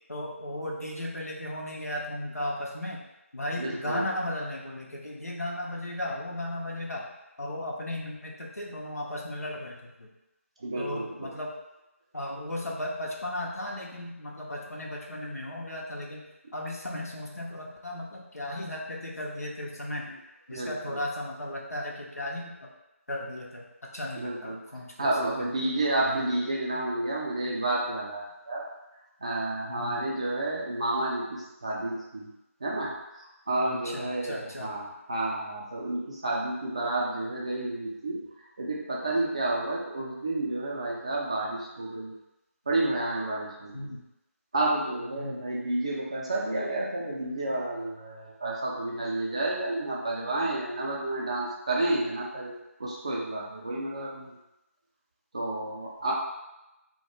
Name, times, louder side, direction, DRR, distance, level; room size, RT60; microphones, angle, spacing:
voice 1, 0.1-3.0 3.3-7.1 7.4-10.1 10.8-11.6 12.1-16.2 16.5-20.1 20.5-22.7 23.1-25.5 26.0-26.2 29.7-30.1 33.7-34.7 43.7-44.0 45.2-45.4, left 1 dB, 85° left, -2 dB, 0.6 m, -36 dB
voice 2, 3.6-4.0 10.6-11.3 20.5-21.0 24.2-24.6 25.0-28.6 29.2-32.3 32.6-38.2 38.6-42.1 42.7-43.9 44.5-54.4 55.3-56.1, right 2 dB, 25° right, -4 dB, 0.3 m, -30 dB
2.2 x 2.1 x 2.9 m, 0.94 s
figure-of-eight pair, 160°, 8 cm